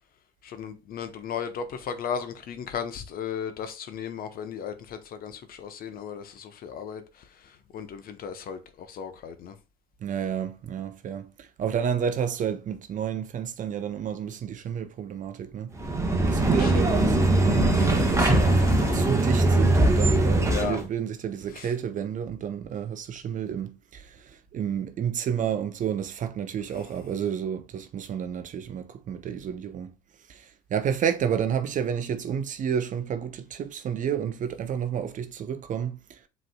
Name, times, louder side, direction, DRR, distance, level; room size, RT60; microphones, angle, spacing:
voice 1, 0.4-9.6 16.5-17.0 17.6-19.1 20.5-20.8 21.5-21.7, left 7 dB, 50° left, 0.8 m, -36 dB
voice 2, 10.0-15.7 16.3-17.2 17.7-29.9 30.3-36.2, right 8 dB, 40° right, 0.6 m, -30 dB
sound 1, 15.8-20.8, right 2 dB, 15° right, 1.1 m, -21 dB
7.5 x 3.1 x 2.2 m
hypercardioid pair, 65°, 20 cm